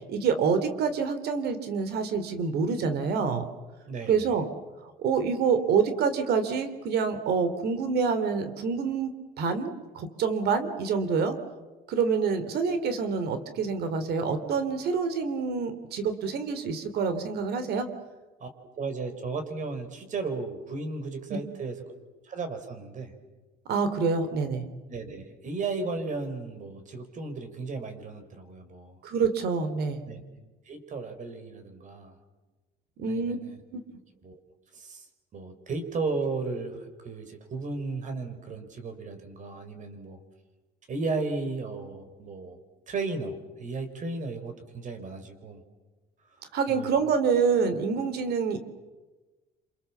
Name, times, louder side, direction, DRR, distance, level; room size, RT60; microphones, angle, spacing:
voice 1, 0.0-3.4 4.1-4.4 5.0-11.4 11.9-17.9 23.7-24.7 29.0-30.1 33.0-33.4 33.7-33.8 46.5-48.6, right 5 dB, 70° right, 10 dB, 3.0 m, -27 dB
voice 2, 3.9-4.3 18.4-21.8 22.2-23.1 24.9-29.0 30.1-30.2 30.6-32.2 33.1-33.6 34.2-34.4 34.7-35.1 35.3-40.2 40.9-42.6 42.9-45.6 46.7-47.0, right 3 dB, 50° right, 8 dB, 4.8 m, -35 dB
27.5 x 27.5 x 7.3 m, 1.2 s
cardioid pair, 110°, 17 cm